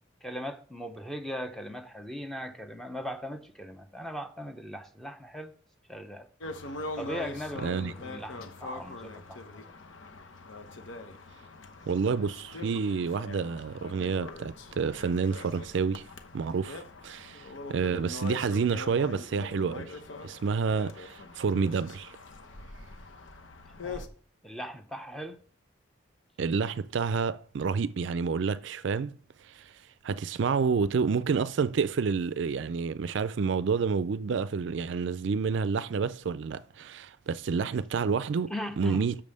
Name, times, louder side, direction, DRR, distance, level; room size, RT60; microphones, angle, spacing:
voice 1, 0.2-5.5 5.9-6.3 7.0-9.7 23.8-24.1 24.4-25.4 38.5-39.1, equal, ahead, 0.7 m, -39 dB
sound 1, 6.4-24.1, left 2 dB, 75° left, 0.9 m, -43 dB
voice 2, 7.6-7.9 11.9-16.1 16.3-20.0 20.2-22.1 26.4-29.2 29.5-29.7 30.0-39.2, right 5 dB, 65° right, 0.4 m, -29 dB
6.9 x 5.4 x 6.5 m
head